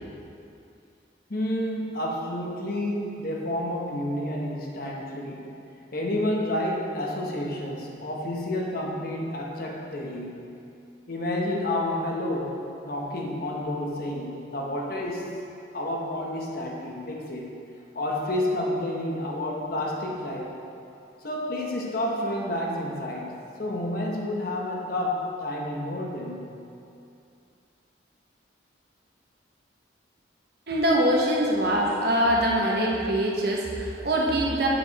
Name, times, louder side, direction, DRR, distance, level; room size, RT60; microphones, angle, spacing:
voice 1, 1.3-5.5 5.9-10.3 11.1-12.6 12.8-15.3 15.7-17.5 17.9-20.5 21.2-23.3 23.6-26.4, left 1 dB, 50° left, -1 dB, 1.0 m, -30 dB
voice 2, 30.7-34.7, right 1 dB, 55° right, -2 dB, 1.1 m, -23 dB
8.1 x 7.1 x 4.1 m, 2.6 s
head